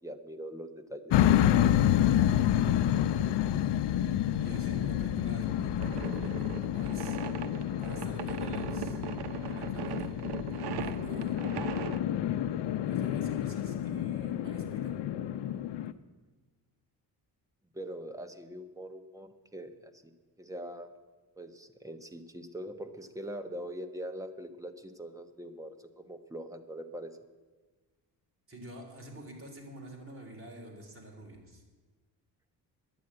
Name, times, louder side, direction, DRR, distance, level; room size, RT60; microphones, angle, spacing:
voice 1, 0.0-2.3 17.7-20.1 20.4-20.9 21.4-27.2, right 1 dB, 10° right, 7 dB, 1.0 m, -43 dB
sound 1, 1.1-15.9, left 11 dB, 75° left, 0.7 m, -29 dB
voice 2, 4.4-7.2 7.8-9.0 9.4-10.1 10.5-11.4 12.8-14.9 28.5-31.6, right 1 dB, 30° right, 1 dB, 3.4 m, -47 dB
sound 2, 5.8-12.0, right 9 dB, 65° right, 0.9 m, -39 dB
11.0 x 9.3 x 8.8 m, 1.3 s
cardioid pair, 115°, 42 cm